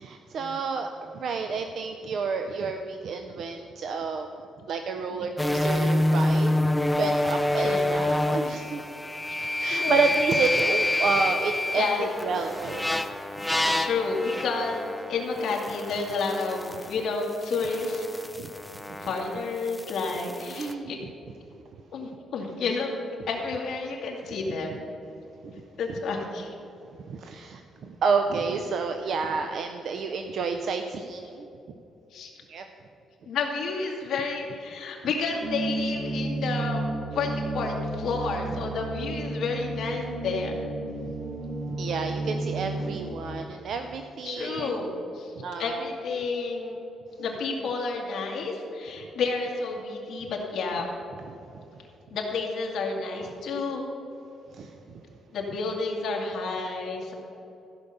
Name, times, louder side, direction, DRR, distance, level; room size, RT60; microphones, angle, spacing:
voice 1, 0.0-4.4 4.7-6.5 7.0-8.8 9.6-12.9 18.4-18.5 18.9-19.0 20.5-21.1 25.4-25.5 27.0-31.5 32.5-32.7 41.1-41.2 41.7-44.7 45.4-45.9 54.5-55.0, right 5 dB, 50° right, 6 dB, 0.5 m, -30 dB
sound 1, 5.4-17.0 17.2-20.7, left 1 dB, 5° left, 0.4 m, -27 dB
voice 2, 9.6-10.0 11.7-12.1 13.7-18.1 19.0-21.0 21.9-22.9 23.3-24.7 25.8-26.5 32.1-32.3 33.2-36.8 37.1-40.5 44.2-45.3 45.6-46.8 47.2-50.9 52.1-53.8 55.3-57.1, left 4 dB, 55° left, -1 dB, 2.0 m, -30 dB
sound 2, 35.4-43.1, right 2 dB, 70° right, 1.9 m, -32 dB
15.0 x 5.7 x 6.7 m, 2.9 s
cardioid pair, 180°, 0 cm